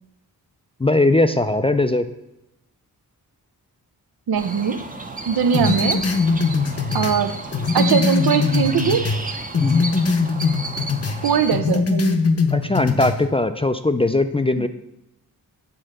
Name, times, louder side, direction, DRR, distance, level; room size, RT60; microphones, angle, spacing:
voice 1, 0.8-2.1 9.6-9.8 12.5-14.7, left 2 dB, 15° left, 9 dB, 0.4 m, -19 dB
sound 1, 4.3-11.6, right 2 dB, 20° right, 0.7 m, -31 dB
voice 2, 4.3-4.8 5.3-6.0 6.9-7.3 7.7-9.0 11.2-12.2 14.6-14.7, right 7 dB, 70° right, 10 dB, 0.6 m, -21 dB
sound 2, 5.5-9.2 9.5-11.2 11.5-13.2, left 4 dB, 40° left, 0.7 m, -21 dB
7.7 x 3.8 x 6.5 m, 0.89 s
cardioid pair, 70°, 38 cm